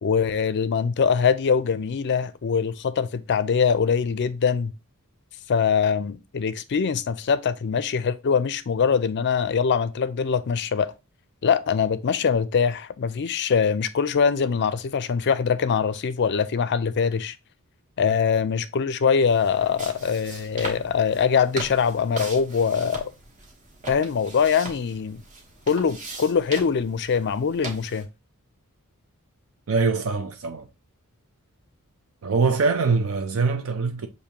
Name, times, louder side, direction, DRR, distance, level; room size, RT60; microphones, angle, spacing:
voice 1, 0.0-4.7 5.5-10.9 11.4-17.3 18.0-23.1 23.9-25.2 25.7-28.1, left 6 dB, 50° left, 0.4 m, -23 dB
sound 1, 19.2-28.0, right 2 dB, 35° right, 1.1 m, -39 dB
voice 2, 29.7-30.7 32.2-34.1, right 4 dB, 65° right, 0.5 m, -23 dB
6.6 x 2.7 x 2.9 m
head